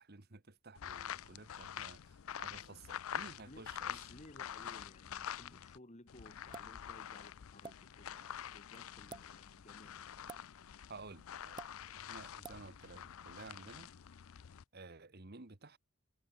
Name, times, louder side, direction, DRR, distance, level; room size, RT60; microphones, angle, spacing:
voice 1, 0.0-4.0 10.9-11.6 11.9-13.9 14.7-15.8, right 3 dB, 50° right, 1.5 m, -53 dB
sound 1, 0.7-5.8 6.1-14.6, left 9 dB, 80° left, 0.5 m, -47 dB
voice 2, 3.4-10.0, left 1 dB, 35° left, 2.6 m, -58 dB
sound 2, 6.5-6.8 7.6-7.8 9.0-9.2 10.3-10.5 11.6-11.7 12.4-12.6, right 4 dB, 20° right, 0.5 m, -48 dB
head